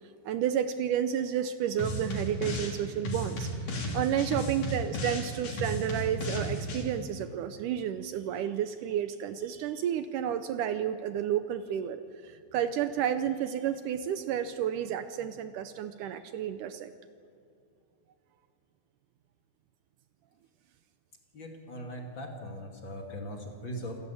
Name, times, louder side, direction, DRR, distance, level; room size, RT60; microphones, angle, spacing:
voice 1, 0.3-3.5 3.9-16.9, right 9 dB, 75° right, 10 dB, 2.1 m, -31 dB
sound 1, 1.8-2.8 3.0-6.8, equal, 65° left, 4.8 m, -34 dB
voice 2, 21.3-24.0, equal, 35° left, 1 dB, 2.7 m, -40 dB
28.5 x 13.5 x 8.4 m, 2.6 s
omnidirectional pair, 4.0 m